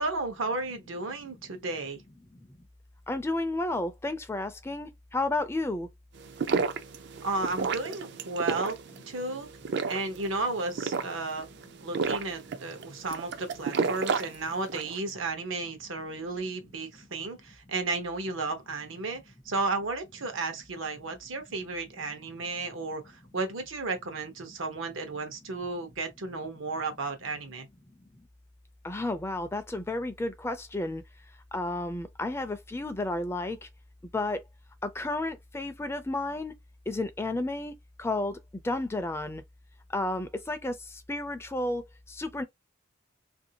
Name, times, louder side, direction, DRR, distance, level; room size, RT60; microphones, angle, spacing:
voice 1, 0.0-2.0 7.2-8.8 9.1-9.5 9.9-11.5 11.8-27.7, right 3 dB, 80° right, 0.9 m, -33 dB
voice 2, 3.1-5.9 28.8-31.0 31.5-33.7 34.1-34.4 34.8-36.5 36.9-38.4 38.6-39.4 39.9-42.4, left 2 dB, 15° left, 0.3 m, -32 dB
sound 1, 6.2-15.0, right 5 dB, 55° right, 0.4 m, -32 dB
2.8 x 2.6 x 2.8 m
head